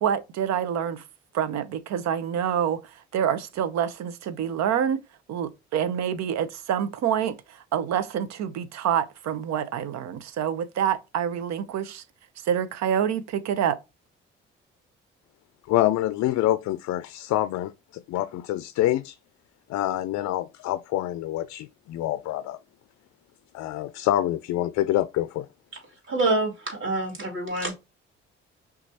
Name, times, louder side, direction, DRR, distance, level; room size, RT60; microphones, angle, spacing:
voice 1, 0.0-1.0 1.3-5.0 5.3-12.0 12.4-13.8, right 9 dB, 65° right, 0.6 m, -27 dB
voice 2, 15.7-19.2 19.7-22.6 23.5-25.5, left 14 dB, 60° left, 0.4 m, -26 dB
voice 3, 26.1-27.8, right 2 dB, 40° right, 2.4 m, -26 dB
5.8 x 2.4 x 2.7 m
hypercardioid pair, 50°, 30 cm